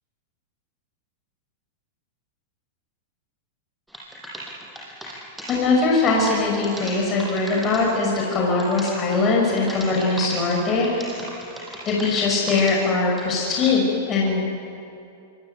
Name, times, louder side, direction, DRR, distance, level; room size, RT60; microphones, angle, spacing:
sound 1, 3.9-5.5 5.9-7.8 8.1-12.7 13.0-13.7, right 1 dB, 5° right, 7.7 m, -37 dB
voice 1, 5.5-11.0 11.8-14.4, left 3 dB, 30° left, -2 dB, 6.1 m, -21 dB
25.5 x 21.5 x 9.3 m, 2.6 s
hypercardioid pair, 125°, 0 cm